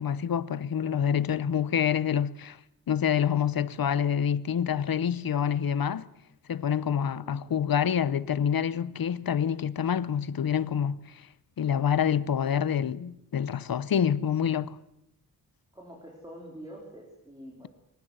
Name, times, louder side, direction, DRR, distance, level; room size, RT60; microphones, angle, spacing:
voice 1, 0.0-2.6 2.9-6.0 6.5-11.0 11.6-14.8, left 8 dB, 70° left, 0.9 m, -27 dB
voice 2, 15.7-17.7, equal, 10° right, 4.2 m, -46 dB
24.0 x 18.0 x 8.1 m
wide cardioid pair, 140°, 37 cm